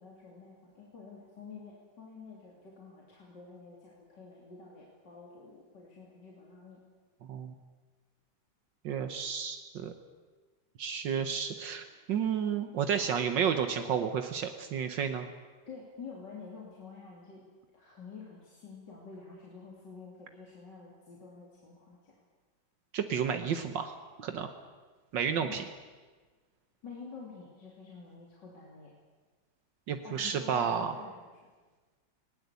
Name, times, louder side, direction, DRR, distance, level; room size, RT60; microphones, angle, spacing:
voice 1, 0.0-6.8 12.1-12.2 12.9-13.0 15.7-17.4 17.7-22.2 25.4-25.6 26.8-28.9 30.0-31.2, left 4 dB, 65° left, -3 dB, 3.7 m, -49 dB
voice 2, 8.8-9.9 10.8-15.3 22.9-24.5 25.1-25.6 29.9-30.9, right 7 dB, 75° right, 8 dB, 1.7 m, -31 dB
20.0 x 19.0 x 8.3 m, 1.4 s
omnidirectional pair, 2.0 m